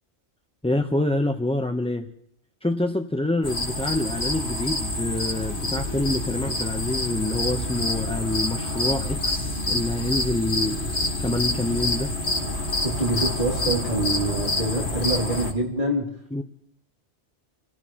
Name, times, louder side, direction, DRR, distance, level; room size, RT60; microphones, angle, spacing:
voice 1, 0.6-2.1 2.6-10.8 11.2-12.1 16.3-16.4, left 1 dB, 5° left, 4 dB, 0.5 m, -26 dB
sound 1, 3.4-15.5, left 2 dB, 50° left, 2.3 m, -27 dB
voice 2, 12.8-16.1, right 2 dB, 45° right, -3 dB, 2.5 m, -26 dB
29.5 x 16.5 x 2.9 m, 0.71 s
omnidirectional pair, 1.1 m